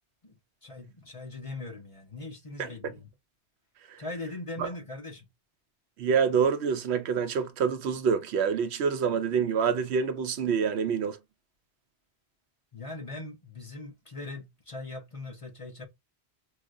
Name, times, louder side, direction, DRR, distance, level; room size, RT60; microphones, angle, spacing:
voice 1, 0.2-3.1 4.0-5.3 12.7-15.9, left 2 dB, 30° left, 1.0 m, -40 dB
voice 2, 6.0-11.2, right 6 dB, 80° right, 0.9 m, -26 dB
4.7 x 2.3 x 2.4 m
omnidirectional pair, 1.1 m